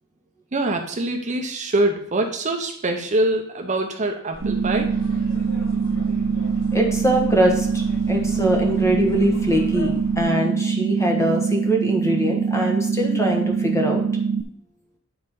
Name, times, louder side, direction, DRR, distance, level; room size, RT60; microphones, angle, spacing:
voice 1, 0.5-4.9, right 2 dB, 35° right, 4 dB, 0.7 m, -24 dB
sound 1, 4.3-10.2, equal, 65° left, 2.5 m, -36 dB
sound 2, 4.4-14.4, right 6 dB, 70° right, 0.6 m, -23 dB
voice 2, 6.7-14.0, equal, 15° left, 1 dB, 1.4 m, -23 dB
9.6 x 3.9 x 5.4 m, 0.65 s
head